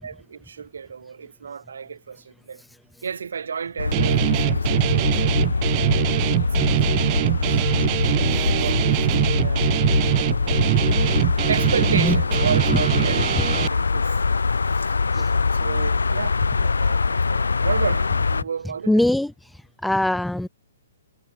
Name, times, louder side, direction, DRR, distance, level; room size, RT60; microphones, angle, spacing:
voice 1, 0.0-2.6 3.0-7.6 8.5-11.2 11.5-14.2 15.1-19.0, right 6 dB, 60° right, 3.6 m, -33 dB
sound 1, 3.8-18.4, left 4 dB, 70° left, 2.7 m, -23 dB
Guitar, 3.9-13.7, right 40 dB or more, 30° right, 2.2 m, -23 dB
voice 2, 18.9-19.3 19.8-20.5, left 1 dB, ahead, 0.5 m, -22 dB
figure-of-eight pair, 120°, 0 cm